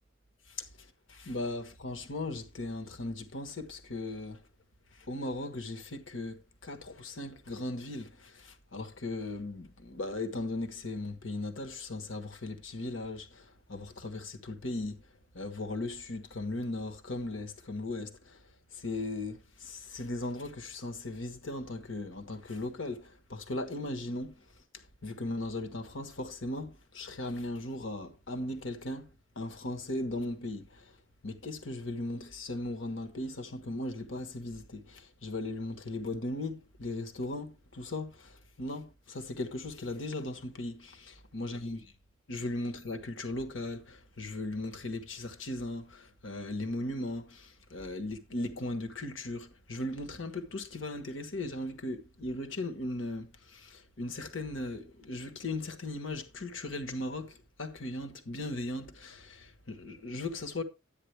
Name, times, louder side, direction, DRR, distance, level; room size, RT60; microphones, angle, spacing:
voice 1, 0.5-4.4 5.1-15.0 15.3-18.4 18.7-24.4 24.7-29.1 29.3-30.9 31.2-41.8 42.3-60.6, left 2 dB, 70° left, 1.4 m, -38 dB
12.0 x 8.9 x 3.3 m
head